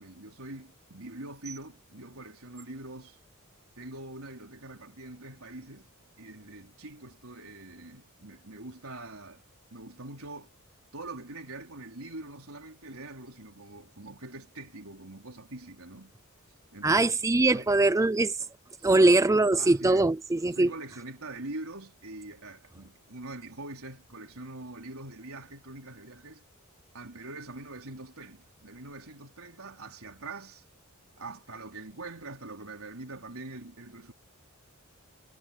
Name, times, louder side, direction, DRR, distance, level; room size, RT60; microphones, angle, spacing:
voice 1, 0.0-3.2 3.8-5.9 6.2-9.4 9.7-10.5 10.9-16.1 16.7-17.0 17.5-17.7 18.8-19.0 19.6-20.0 20.5-26.4 26.9-30.6 31.1-34.1, right 2 dB, 70° right, 4.5 m, -43 dB
voice 2, 16.8-18.4 18.8-20.7, right 2 dB, 15° right, 0.4 m, -22 dB
head